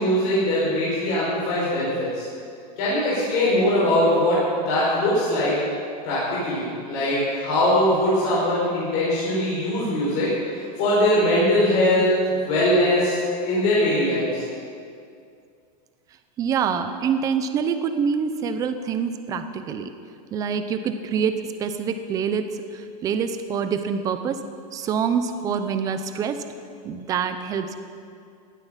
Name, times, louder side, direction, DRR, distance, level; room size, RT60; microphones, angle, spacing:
voice 1, 0.0-2.3 2.8-4.4 4.7-5.5 6.0-13.2 13.4-14.4, left 1 dB, 40° left, -8 dB, 5.1 m, -21 dB
voice 2, 16.4-19.9 20.3-24.4 24.7-26.4 26.8-27.8, right 6 dB, 15° right, 9 dB, 0.7 m, -26 dB
17.5 x 12.5 x 5.8 m, 2.3 s
supercardioid pair, 175°, 21 cm